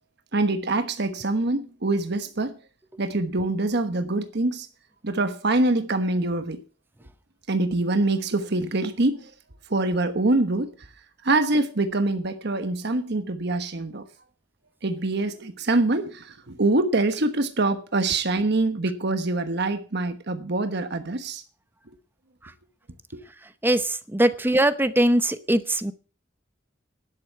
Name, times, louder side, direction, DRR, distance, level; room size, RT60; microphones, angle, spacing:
voice 1, 0.3-2.6 3.0-4.7 5.0-6.6 7.5-9.3 9.7-10.7 11.2-14.0 14.8-21.4 23.1-23.2, right 2 dB, 60° right, 1.2 m, -24 dB
voice 2, 23.6-25.9, right 1 dB, 10° right, 0.7 m, -21 dB
11.5 x 8.1 x 6.8 m
head